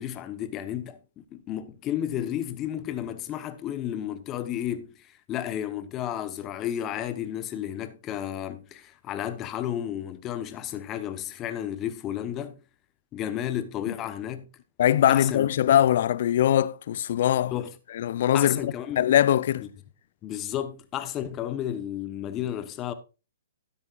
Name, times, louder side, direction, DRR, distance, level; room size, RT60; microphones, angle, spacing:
voice 1, 0.0-12.6 13.1-14.5 15.1-15.5 17.5-17.7 18.3-19.1 20.2-22.9, left 11 dB, 25° left, 1.0 m, -32 dB
voice 2, 14.8-17.5 17.9-19.7, left 11 dB, 55° left, 0.5 m, -22 dB
12.5 x 9.6 x 2.5 m
hypercardioid pair, 135°, 0 cm